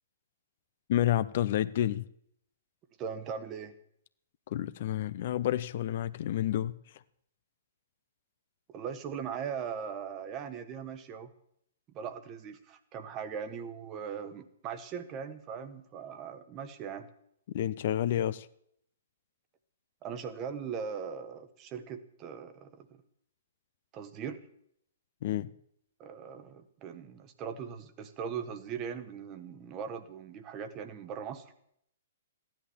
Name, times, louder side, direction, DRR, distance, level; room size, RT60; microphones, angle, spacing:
voice 1, 0.9-2.0 4.5-6.8 17.5-18.5 25.2-25.5, left 12 dB, 50° left, 14 dB, 0.6 m, -29 dB
voice 2, 3.0-3.7 8.7-11.3 11.9-17.1 20.0-23.0 23.9-24.4 26.0-31.5, right 7 dB, 25° right, 9 dB, 1.4 m, -40 dB
15.5 x 10.5 x 7.2 m, 0.70 s
figure-of-eight pair, 115°, 0 cm